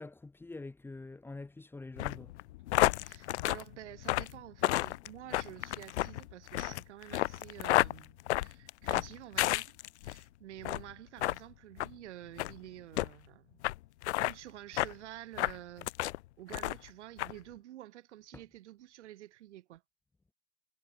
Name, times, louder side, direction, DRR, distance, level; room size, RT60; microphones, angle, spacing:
voice 1, 0.0-2.3 18.3-18.4, left 3 dB, 5° left, 2.6 m, -45 dB
sound 1, 2.0-10.2 10.6-10.9 11.2-11.4 11.8-11.9 12.4-12.5 13.0-13.1 13.6-13.7 14.0-14.3 14.8-14.9 15.4-16.2 16.5-16.9 17.2-17.3, left 17 dB, 60° left, 0.6 m, -31 dB
voice 2, 3.0-13.6 14.2-15.9 16.4-19.8, right 14 dB, 65° right, 4.6 m, -49 dB
supercardioid pair, 150°, 37 cm